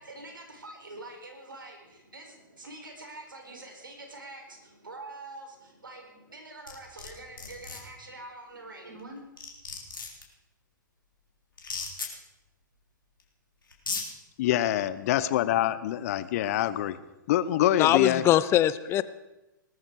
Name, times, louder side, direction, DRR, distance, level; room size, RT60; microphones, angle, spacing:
voice 1, 0.0-9.2, right 2 dB, 80° right, 3 dB, 4.6 m, -45 dB
sound 1, 6.7-7.1 7.4-7.8 9.0-9.1 9.4-10.2 11.6-12.1 13.2-13.3 13.7-14.0, left 4 dB, 80° left, 3.6 m, -35 dB
voice 2, 14.4-17.0 17.3-18.2, left 12 dB, 45° left, 15 dB, 0.9 m, -25 dB
voice 3, 17.8-19.0, left 12 dB, 25° left, 16 dB, 0.6 m, -22 dB
19.5 x 13.5 x 4.8 m, 0.99 s
figure-of-eight pair, 115°, 11 cm